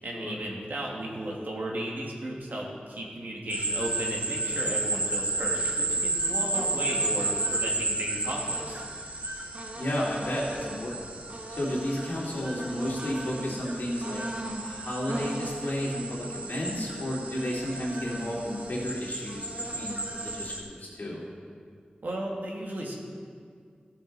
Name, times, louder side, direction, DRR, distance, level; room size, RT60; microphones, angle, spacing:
voice 1, 0.0-8.8 22.0-23.0, right 1 dB, 75° right, -2 dB, 1.8 m, -35 dB
sound 1, 3.5-20.6, right 2 dB, 50° right, 1.2 m, -32 dB
voice 2, 9.7-11.1 11.5-14.2 14.6-21.2, equal, 75° left, -5 dB, 2.7 m, -32 dB
15.0 x 6.9 x 4.0 m, 2.1 s
wide cardioid pair, 70°, 3 cm